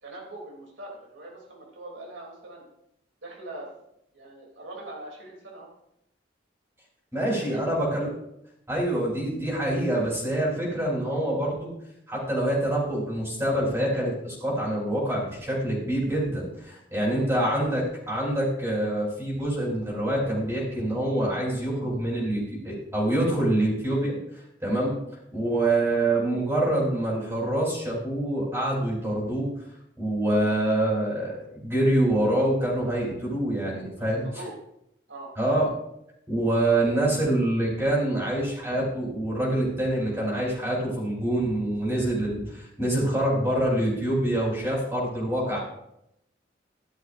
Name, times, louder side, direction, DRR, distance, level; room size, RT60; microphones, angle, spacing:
voice 1, 0.0-2.7 3.2-3.7 4.1-5.7 7.3-7.6 17.0-17.3 34.0-34.5 35.1-35.3 45.5-45.6, right 2 dB, 90° right, -2 dB, 3.0 m, -42 dB
voice 2, 7.1-8.1 8.7-11.7 12.1-24.2 24.6-24.9 25.3-29.5 30.0-34.2 35.4-35.7 36.3-45.6, right 1 dB, 15° right, -4 dB, 3.5 m, -26 dB
14.5 x 11.5 x 2.6 m, 0.79 s
head